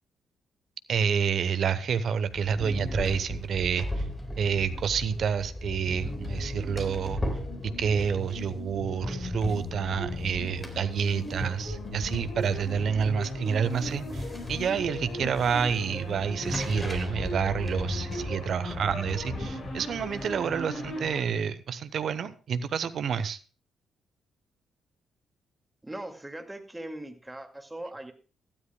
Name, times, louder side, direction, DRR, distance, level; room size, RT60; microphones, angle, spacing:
voice 1, 0.9-4.0 4.4-7.2 7.8-23.4, right 7 dB, 60° right, 0.9 m, -29 dB
sound 1, 2.2-20.4, left 1 dB, 15° left, 4.0 m, -37 dB
sound 2, 6.1-21.2, left 2 dB, 50° left, 4.7 m, -38 dB
voice 2, 25.8-28.1, right 1 dB, 15° right, 2.1 m, -40 dB
17.5 x 12.5 x 2.3 m
hypercardioid pair, 40°, 0 cm